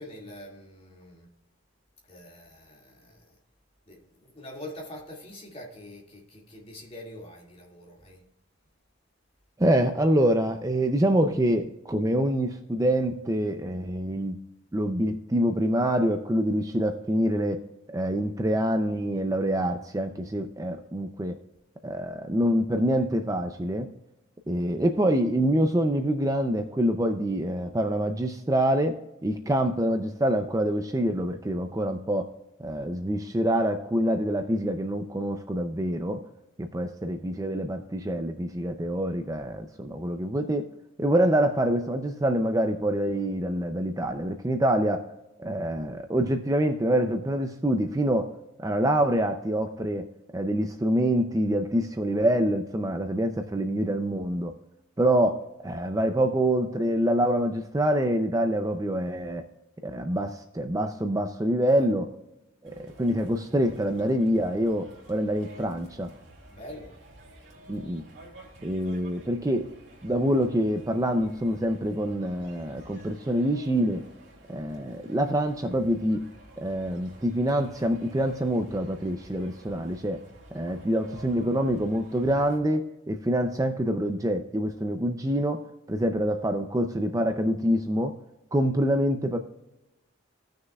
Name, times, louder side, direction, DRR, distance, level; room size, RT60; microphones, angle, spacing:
voice 1, 0.0-1.3 2.1-3.4 3.9-8.2 61.7-61.9 66.5-67.0, left 1 dB, 30° left, -1 dB, 2.2 m, -44 dB
voice 2, 9.6-14.4 14.7-17.6 17.9-21.4 21.8-23.9 24.5-29.0 29.2-32.3 32.6-36.2 36.6-40.7 41.0-45.0 45.4-48.3 48.6-50.1 50.3-54.5 55.0-59.4 59.8-62.1 62.6-66.1 67.7-68.0 68.6-69.7 70.0-74.0 74.5-76.2 76.6-80.2 80.5-85.6 85.9-88.1 88.5-89.4, right 1 dB, 15° right, 6 dB, 0.5 m, -26 dB
sound 1, 62.6-82.6, right 1 dB, 60° right, 2.6 m, -51 dB
17.0 x 6.4 x 2.3 m, 0.94 s
head